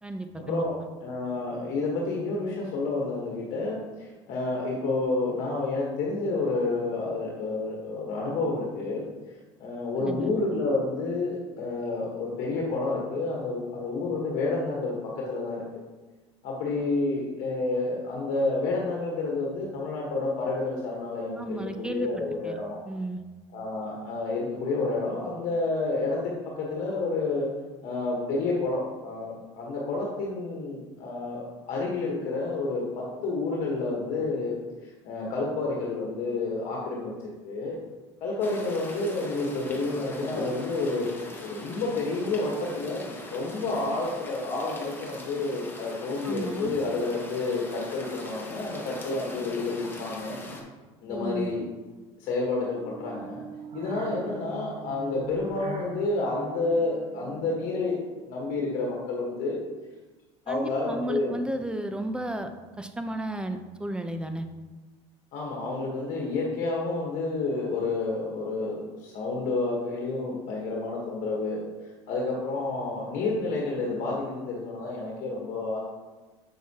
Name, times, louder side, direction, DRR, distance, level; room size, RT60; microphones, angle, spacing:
voice 1, 0.0-0.6 10.0-10.3 21.4-22.1 22.4-22.6 22.9-23.2 46.2-46.8 51.1-51.5 60.5-62.5 62.8-64.5, right 1 dB, 5° right, 7 dB, 0.7 m, -33 dB
voice 2, 1.0-9.0 9.6-15.6 16.4-22.8 23.5-27.5 27.8-34.5 34.8-37.8 38.2-41.1 41.4-43.0 43.3-50.4 51.0-51.6 52.2-53.4 53.7-58.0 58.3-59.6 60.5-61.4 65.3-71.6 72.1-75.8, left 3 dB, 60° left, -2 dB, 1.4 m, -29 dB
sound 1, 38.4-50.6, left 1 dB, 15° left, 1.4 m, -42 dB
sound 2, 52.7-59.1, right 5 dB, 45° right, 1.0 m, -43 dB
7.5 x 6.1 x 2.9 m, 1.3 s
supercardioid pair, 85°, 15 cm